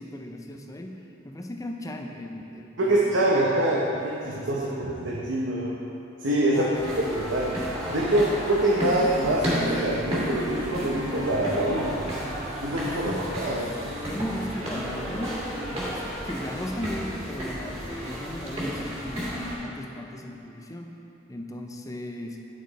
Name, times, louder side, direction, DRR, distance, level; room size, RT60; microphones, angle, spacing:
voice 1, 0.0-3.2 4.3-4.9 6.5-7.0 13.0-13.3 14.0-20.9 21.3-22.4, left 1 dB, 15° left, 3 dB, 0.5 m, -36 dB
voice 2, 2.8-5.8 6.2-6.7 7.0-7.6 7.9-12.0 12.6-13.2 13.4-13.7, right 1 dB, 75° right, -5 dB, 0.9 m, -25 dB
sound 1, 6.7-19.5, equal, 35° right, 2.1 m, -32 dB
10.0 x 6.5 x 4.1 m, 2.8 s
head